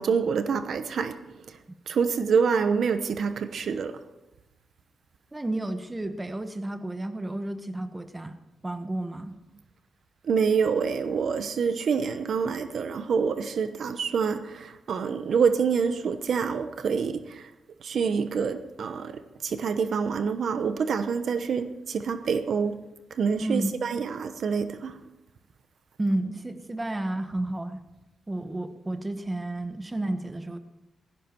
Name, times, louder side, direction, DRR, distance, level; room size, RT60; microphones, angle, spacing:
voice 1, 0.0-1.6 1.9-4.0 10.2-17.5 17.8-22.8 23.1-25.0, right 6 dB, 65° right, 0.9 m, -27 dB
voice 2, 5.3-8.4 8.6-9.3 23.4-23.7 26.0-27.8 28.3-30.6, right 1 dB, 15° right, 1.2 m, -31 dB
16.5 x 16.0 x 4.6 m
cardioid pair, 105°, 0 cm